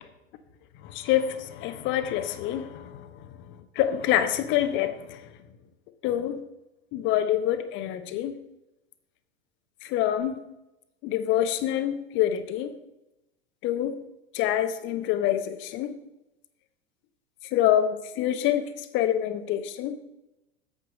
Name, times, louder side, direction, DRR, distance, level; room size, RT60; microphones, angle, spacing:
voice 1, 0.9-2.9 3.8-5.2 6.0-6.4 6.9-8.3 9.9-10.4 11.0-12.7 13.6-13.9 14.3-15.9 17.5-18.7 18.9-20.0, left 11 dB, 35° left, 10 dB, 1.0 m, -26 dB
8.7 x 7.9 x 5.2 m, 0.96 s
figure-of-eight pair, 90°, 32 cm